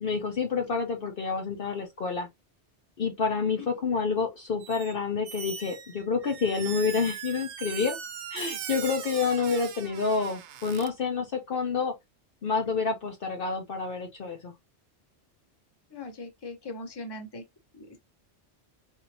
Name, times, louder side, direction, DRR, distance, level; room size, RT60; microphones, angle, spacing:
voice 1, 0.0-2.3 3.0-8.0 8.3-11.9 12.4-14.5, left 5 dB, 55° left, 0.8 m, -28 dB
Squeak, 4.6-4.9 5.2-10.9, right 9 dB, 80° right, 0.9 m, -40 dB
voice 2, 15.9-17.4 17.7-18.0, left 2 dB, 25° left, 0.9 m, -40 dB
4.1 x 2.8 x 2.7 m
omnidirectional pair, 1.2 m